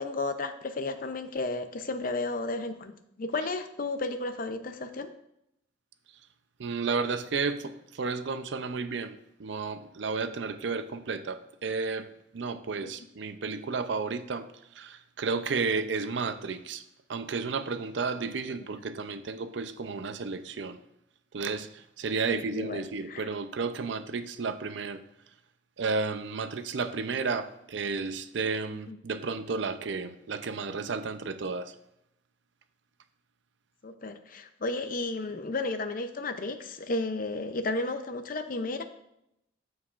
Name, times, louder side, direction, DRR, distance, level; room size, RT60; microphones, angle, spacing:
voice 1, 0.0-5.1 18.7-18.8 22.3-23.3 28.9-29.0 33.8-38.8, left 2 dB, 45° left, 9 dB, 0.5 m, -33 dB
voice 2, 6.6-12.1 12.3-14.5 14.7-16.8 17.1-20.8 21.3-25.0 25.8-31.7, right 4 dB, 65° right, 11 dB, 0.5 m, -32 dB
14.0 x 4.7 x 2.5 m, 0.81 s
head